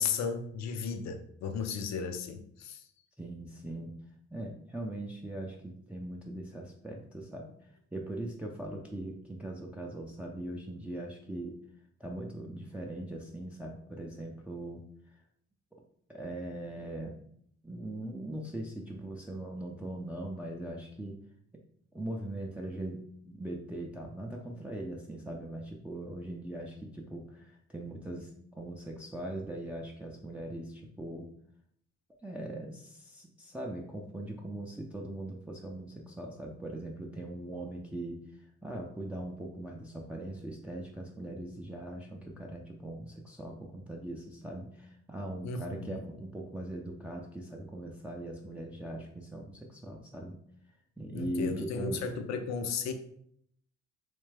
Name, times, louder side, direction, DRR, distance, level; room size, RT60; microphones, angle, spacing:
voice 1, 0.0-2.9 45.4-45.9 51.1-52.9, left 5 dB, 65° left, 7 dB, 0.6 m, -34 dB
voice 2, 3.2-3.9 4.3-11.6 12.0-14.8 15.1-15.2 16.1-17.2 17.6-21.2 21.9-28.3 28.6-31.3 32.2-50.4 51.0-52.1, right 1 dB, 5° right, -1 dB, 0.4 m, -40 dB
3.3 x 3.2 x 3.2 m, 0.68 s
cardioid pair, 90°, 30 cm